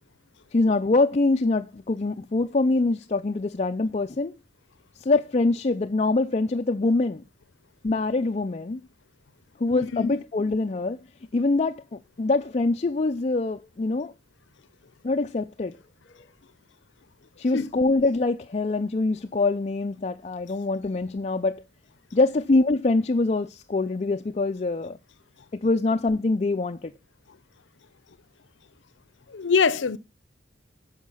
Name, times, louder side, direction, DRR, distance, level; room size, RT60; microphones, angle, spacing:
voice 1, 0.5-4.3 5.0-7.2 7.8-8.8 9.6-11.0 11.3-14.1 15.0-15.8 17.4-21.6 22.1-25.0 25.5-26.9, left 3 dB, 35° left, 0.4 m, -24 dB
voice 2, 9.7-10.2 17.5-17.8 29.3-30.0, left 5 dB, 80° left, 0.6 m, -24 dB
9.6 x 6.5 x 5.5 m
head